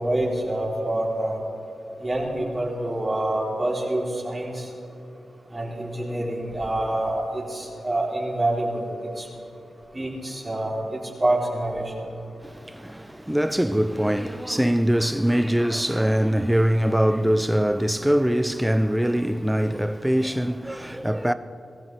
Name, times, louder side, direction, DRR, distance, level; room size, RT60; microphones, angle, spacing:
voice 1, 0.0-1.4 2.0-4.7 5.5-8.9 9.2-9.3 9.9-11.8, right 1 dB, 30° right, 3.4 m, -26 dB
voice 2, 12.4-21.3, equal, 10° right, 0.6 m, -23 dB
21.0 x 14.5 x 3.4 m
cardioid pair, 45°, 0 cm